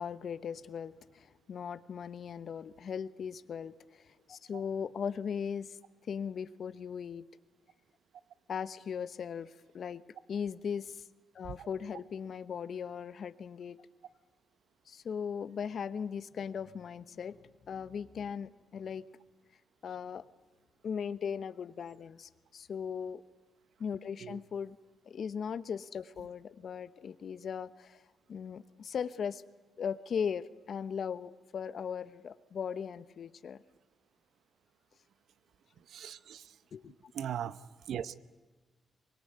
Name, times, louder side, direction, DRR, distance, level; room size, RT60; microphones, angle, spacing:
voice 1, 0.0-5.8 6.1-7.2 8.5-10.0 10.3-11.0 11.3-13.8 14.9-19.0 19.8-20.2 20.8-23.2 23.8-24.8 25.1-28.0 28.3-29.4 29.8-33.6 36.7-37.1, left 7 dB, 60° left, 15 dB, 1.0 m, -38 dB
voice 2, 35.9-36.5 37.1-37.6 37.9-38.1, right 9 dB, 75° right, 15 dB, 0.9 m, -39 dB
24.0 x 22.0 x 9.6 m, 1.2 s
cardioid pair, 70°, 0 cm